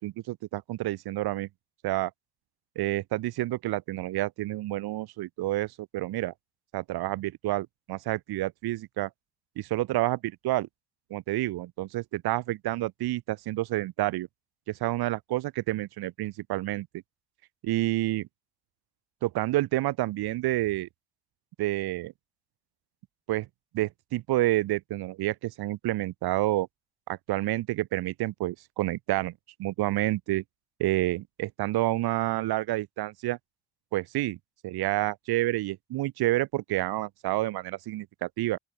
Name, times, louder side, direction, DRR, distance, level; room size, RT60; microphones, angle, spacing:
voice 1, 0.0-1.5 1.8-2.1 2.8-6.3 6.7-9.1 9.6-10.7 11.1-14.3 14.7-16.9 17.6-18.3 19.2-20.9 21.6-22.1 23.3-23.5 23.7-26.7 27.1-29.3 29.6-30.4 30.8-33.4 33.9-34.4 34.6-38.6, right 16 dB, 85° right, 0.6 m, -29 dB
open air
cardioid pair, 65°, 37 cm